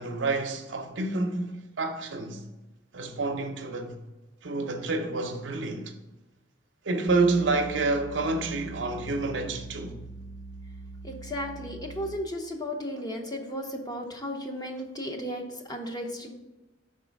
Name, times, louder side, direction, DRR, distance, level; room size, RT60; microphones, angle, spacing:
voice 1, 0.0-2.4 2.9-4.0 4.4-5.9 6.9-9.9, right 3 dB, 75° right, 0.7 m, -28 dB
sound 1, 7.1-12.4, right 2 dB, 60° left, 0.4 m, -42 dB
voice 2, 11.0-15.4 15.7-16.3, equal, 20° left, 0.8 m, -34 dB
5.4 x 3.7 x 5.1 m
head